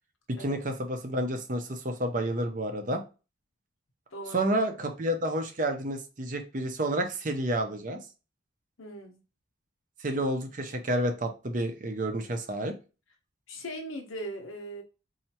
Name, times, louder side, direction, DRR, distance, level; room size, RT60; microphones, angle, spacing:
voice 1, 0.4-3.0 4.3-8.0 10.0-12.7, right 1 dB, 40° right, 0.7 m, -30 dB
voice 2, 4.1-4.6 8.8-9.2 13.5-14.8, equal, 85° left, 1.1 m, -39 dB
4.4 x 2.8 x 2.8 m
head